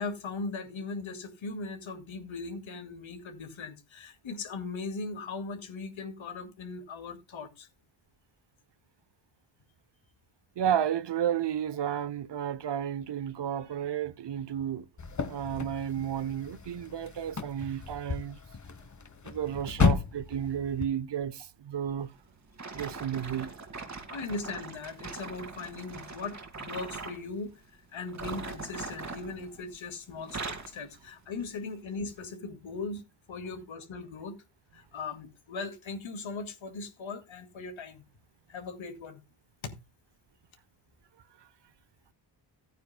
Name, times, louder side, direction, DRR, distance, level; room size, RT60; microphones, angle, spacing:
voice 1, 0.0-7.7 24.1-27.5 27.9-33.0 33.3-34.4 34.7-38.0 38.5-39.2 39.6-39.7, left 4 dB, 80° left, 2.3 m, -39 dB
voice 2, 10.6-14.9 15.3-18.4 19.2-22.1 22.7-23.6, right 9 dB, 60° right, 0.9 m, -32 dB
sound 1, 15.0-20.9, left 5 dB, 40° left, 1.3 m, -33 dB
sound 2, 22.6-27.2 28.0-29.8 30.1-30.8 31.4-31.6 32.2-32.3, right 4 dB, 35° right, 2.1 m, -41 dB
15.0 x 9.2 x 2.2 m
cardioid pair, 70°, 47 cm